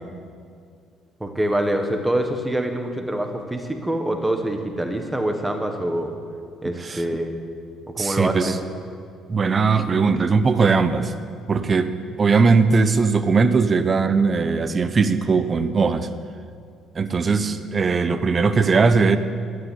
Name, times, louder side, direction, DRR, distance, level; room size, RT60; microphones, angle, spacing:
voice 1, 1.2-6.1 6.6-7.3 7.9-8.6, right 1 dB, 5° right, 5 dB, 1.2 m, -25 dB
voice 2, 8.0-8.5 9.3-11.1 11.5-11.9 12.2-16.1 16.9-19.2, right 4 dB, 25° right, 11 dB, 0.6 m, -19 dB
12.5 x 10.0 x 9.7 m, 2.2 s
cardioid pair, 175°, 0 cm